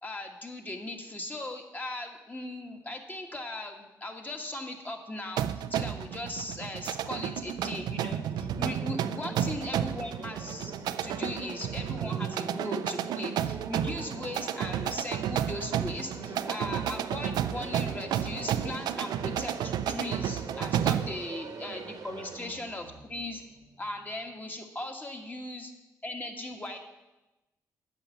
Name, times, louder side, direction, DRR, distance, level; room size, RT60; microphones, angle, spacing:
voice 1, 0.0-10.8 11.0-23.4 23.8-25.7 26.0-26.8, left 1 dB, 25° left, 3 dB, 1.7 m, -38 dB
sound 1, 5.4-21.2, right 10 dB, 80° right, 0.4 m, -32 dB
sound 2, 6.4-24.2, right 5 dB, 65° right, 1.1 m, -44 dB
8.3 x 6.0 x 7.3 m, 1.0 s
supercardioid pair, 55°, 7 cm